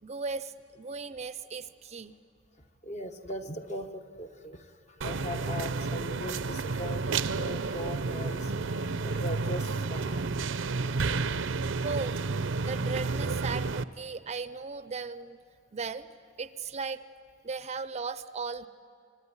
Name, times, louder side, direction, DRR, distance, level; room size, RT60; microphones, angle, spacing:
voice 1, 0.0-2.1 11.8-12.2 12.6-15.4 15.7-16.1 16.4-17.0 17.4-18.7, right 4 dB, 35° right, 13 dB, 0.6 m, -36 dB
voice 2, 2.8-4.7 5.0-10.3, equal, 35° left, 6 dB, 1.2 m, -39 dB
sound 1, 5.0-13.8, right 4 dB, 75° right, 0.7 m, -31 dB
25.0 x 24.0 x 9.8 m, 2.3 s
head